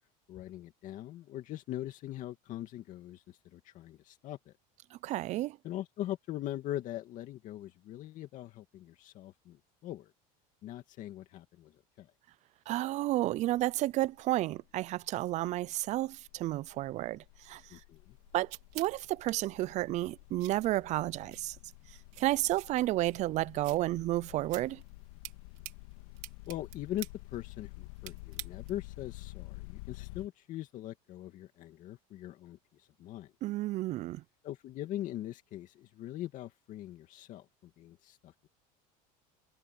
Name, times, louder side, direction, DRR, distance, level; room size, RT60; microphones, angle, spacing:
voice 1, 0.3-4.5 5.6-10.1 10.6-12.1 17.7-18.2 26.5-33.3 34.4-38.5, left 13 dB, 45° left, 2.2 m, -42 dB
voice 2, 4.9-5.6 12.7-17.8 18.3-21.6 22.2-24.8 33.4-34.2, right 16 dB, 40° right, 0.5 m, -32 dB
sound 1, 13.5-13.8 14.1-30.3, left 20 dB, 80° left, 2.1 m, -50 dB
sound 2, 17.9-28.9, right 24 dB, 70° right, 3.8 m, -51 dB
supercardioid pair, 135°, 18 cm